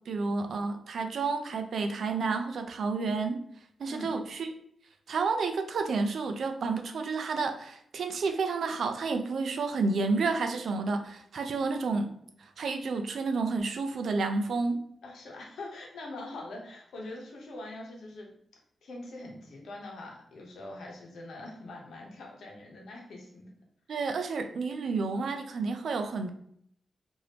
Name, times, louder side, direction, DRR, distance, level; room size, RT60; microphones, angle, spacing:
voice 1, 0.1-3.4 3.8-4.5 5.1-12.1 12.4-14.8 23.9-26.3, right 4 dB, 70° right, 6 dB, 0.4 m, -30 dB
voice 2, 15.0-18.3 18.8-23.5, left 2 dB, 85° left, -1 dB, 0.9 m, -43 dB
3.3 x 2.6 x 2.9 m, 0.69 s
cardioid pair, 95°, 0 cm